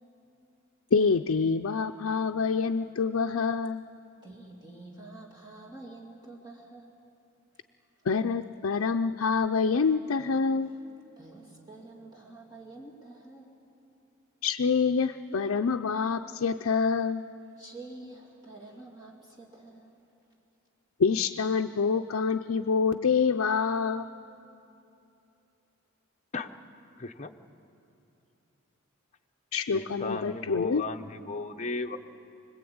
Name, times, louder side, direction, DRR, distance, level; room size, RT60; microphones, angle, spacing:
voice 1, 0.9-3.8 8.1-10.7 14.4-17.2 21.0-24.1 29.5-30.8, left 5 dB, 85° left, 4 dB, 0.5 m, -26 dB
voice 2, 4.2-6.9 11.2-13.5 17.6-20.0, right 2 dB, 20° right, -3 dB, 2.7 m, -48 dB
voice 3, 27.0-27.3 29.7-32.0, left 3 dB, 35° left, 5 dB, 0.9 m, -35 dB
25.0 x 20.0 x 8.7 m, 2.8 s
head